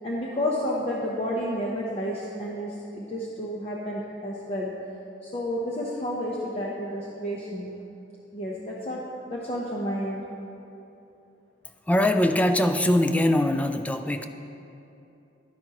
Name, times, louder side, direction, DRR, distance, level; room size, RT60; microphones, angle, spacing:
voice 1, 0.0-4.7 5.2-7.7 8.3-10.2, equal, 35° left, -4 dB, 0.8 m, -31 dB
voice 2, 11.9-14.2, left 1 dB, 10° left, 7 dB, 0.3 m, -22 dB
11.5 x 10.0 x 2.9 m, 2.9 s
head